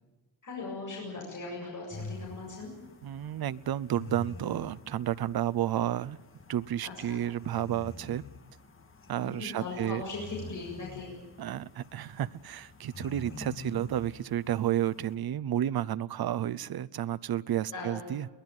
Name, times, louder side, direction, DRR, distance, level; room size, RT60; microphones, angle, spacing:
voice 1, 0.4-2.7 6.8-7.2 9.2-11.1 17.7-18.0, left 3 dB, 45° left, -2 dB, 7.8 m, -39 dB
sound 1, 1.9-15.1, left 3 dB, 30° left, 1.9 m, -47 dB
voice 2, 3.0-6.2 6.5-8.2 9.1-10.0 11.4-18.3, right 11 dB, 55° right, 15 dB, 0.7 m, -31 dB
23.0 x 19.0 x 9.1 m, 1.2 s
wide cardioid pair, 165°, 43 cm